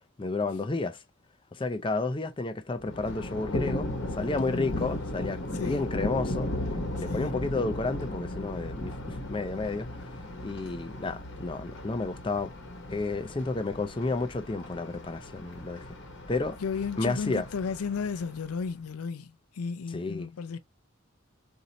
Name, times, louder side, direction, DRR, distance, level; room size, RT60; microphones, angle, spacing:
voice 1, 0.2-1.0 1.5-6.5 6.9-9.9 10.4-12.5 12.9-15.9 16.3-16.6 17.0-17.5 19.9-20.3, left 3 dB, 25° left, 0.4 m, -31 dB
Thunder, 2.8-18.7, left 1 dB, 55° left, 1.0 m, -36 dB
voice 2, 4.5-4.9 5.5-5.8 7.1-7.3 16.6-20.6, left 5 dB, 85° left, 0.4 m, -34 dB
4.0 x 2.7 x 4.0 m
head